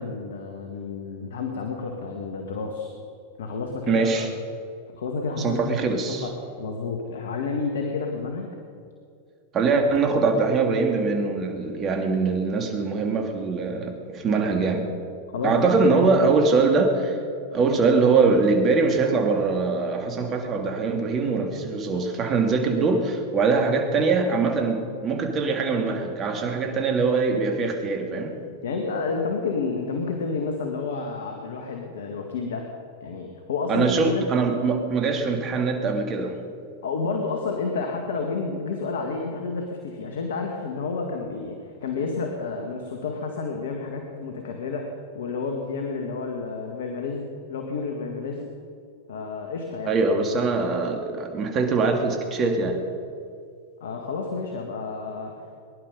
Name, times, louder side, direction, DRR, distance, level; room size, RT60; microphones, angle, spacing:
voice 1, 0.0-2.9 3.4-4.3 4.9-5.6 6.1-6.3 6.6-8.5 15.3-16.3 28.6-32.7 33.0-34.3 36.8-44.9 45.1-48.4 49.1-50.0 53.8-55.3, left 4 dB, 75° left, 3 dB, 1.9 m, -30 dB
voice 2, 3.9-4.3 5.4-6.3 9.5-14.9 15.4-17.2 17.5-28.4 33.7-36.4 49.8-52.8, right 4 dB, 30° right, 3 dB, 2.8 m, -23 dB
21.5 x 11.5 x 5.4 m, 2.4 s
hypercardioid pair, 100°, 0 cm